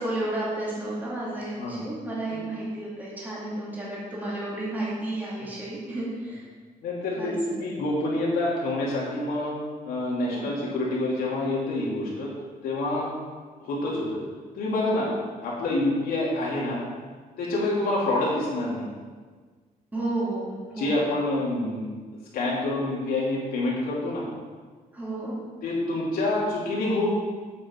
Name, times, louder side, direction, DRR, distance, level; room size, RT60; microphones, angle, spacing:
voice 1, 0.0-6.5 7.2-7.7 10.3-10.6 19.9-21.0 24.9-25.3, right 1 dB, 10° right, -7 dB, 2.5 m, -32 dB
voice 2, 6.8-9.5 9.8-12.3 12.6-13.1 13.6-14.2 14.5-15.1 15.4-16.8 17.4-18.8 20.8-21.9 22.3-24.2 25.6-27.1, left 2 dB, 90° left, -4 dB, 3.0 m, -27 dB
8.7 x 7.9 x 4.7 m, 1.5 s
cardioid pair, 160°, 15 cm